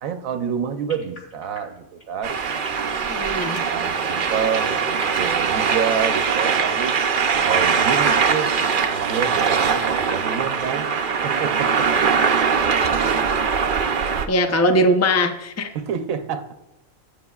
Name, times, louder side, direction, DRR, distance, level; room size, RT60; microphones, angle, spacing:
voice 1, 0.0-2.9 3.6-6.9 7.4-10.9 11.2-12.0 15.7-16.5, right 7 dB, 85° right, 8 dB, 1.1 m, -28 dB
sound 1, 0.9-5.2 5.7-6.0 6.2-6.4 6.8-7.6 8.1-9.2 9.6-10.0 10.5-10.8 11.2-11.3 11.5-12.3, left 2 dB, 35° left, 3.0 m, -39 dB
sound 2, 2.2-14.3, right 6 dB, 50° right, 0.7 m, -21 dB
voice 2, 3.1-3.6 14.3-15.7, equal, 20° left, 6 dB, 0.4 m, -20 dB
15.0 x 8.8 x 2.3 m, 0.93 s
omnidirectional pair, 1.4 m